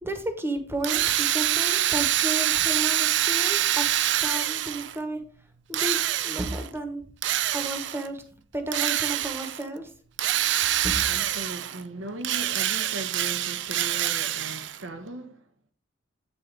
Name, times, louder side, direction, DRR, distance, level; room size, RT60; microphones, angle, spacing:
voice 1, 0.0-3.9 4.2-5.2 5.7-7.0 7.5-8.2 8.5-9.9 10.8-11.0, right 1 dB, 10° right, 1.1 m, -32 dB
Drill, 0.8-5.0 5.7-6.7 7.2-8.1 8.7-9.6 10.2-11.8 12.2-14.8, right 12 dB, 65° right, 0.4 m, -25 dB
voice 2, 11.0-15.7, right 2 dB, 85° right, 1.1 m, -38 dB
9.3 x 4.5 x 4.6 m
head